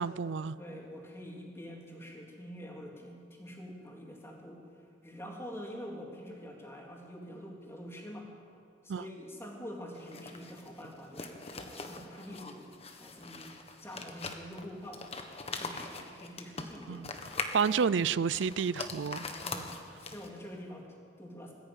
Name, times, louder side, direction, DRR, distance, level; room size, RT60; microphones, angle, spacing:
voice 1, 0.0-0.6 8.9-9.0 16.9-17.1 17.5-19.2, right 6 dB, 85° right, 18 dB, 0.4 m, -30 dB
voice 2, 0.6-4.6 5.0-8.3 8.8-12.7 13.0-13.5 13.8-15.1 15.5-17.0 19.2-21.5, equal, 15° left, -1 dB, 3.4 m, -46 dB
sound 1, 9.9-20.5, left 3 dB, 35° left, 1.5 m, -42 dB
20.5 x 14.5 x 9.1 m, 2.4 s
head